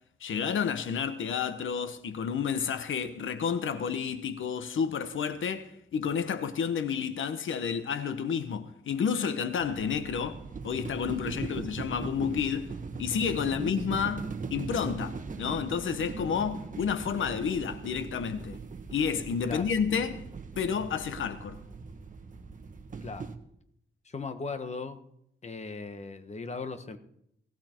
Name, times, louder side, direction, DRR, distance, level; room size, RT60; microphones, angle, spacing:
voice 1, 0.2-12.7 13.0-18.6 18.9-20.2 20.6-21.6, left 7 dB, 85° left, 1.0 m, -30 dB
sound 1, 9.6-23.3, right 4 dB, 40° right, 1.4 m, -40 dB
voice 2, 13.4-13.7 19.5-19.7 23.0-23.3 24.0-25.0 25.4-27.0, left 4 dB, 35° left, 1.2 m, -38 dB
19.0 x 16.0 x 4.5 m
wide cardioid pair, 155°, 20 cm